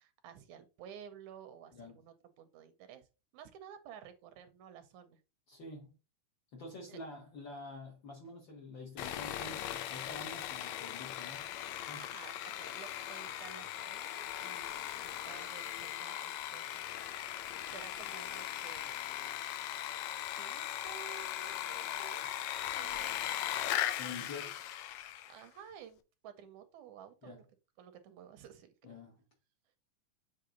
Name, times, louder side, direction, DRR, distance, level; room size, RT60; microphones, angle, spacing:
voice 1, 0.0-3.1 3.3-5.2 6.9-7.0 12.0-17.2 17.7-19.0 20.3-23.3 24.0-24.1 24.4-24.5 25.3-27.4 27.8-28.7, right 9 dB, 75° right, 2.1 m, -53 dB
voice 2, 5.5-6.0 6.5-11.5 11.9-12.1 24.0-24.6 27.2-27.4 28.8-29.2, left 2 dB, 55° left, 1.4 m, -47 dB
Sawing, 9.0-25.4, left 12 dB, 80° left, 1.7 m, -39 dB
7.7 x 3.4 x 3.9 m
omnidirectional pair, 3.6 m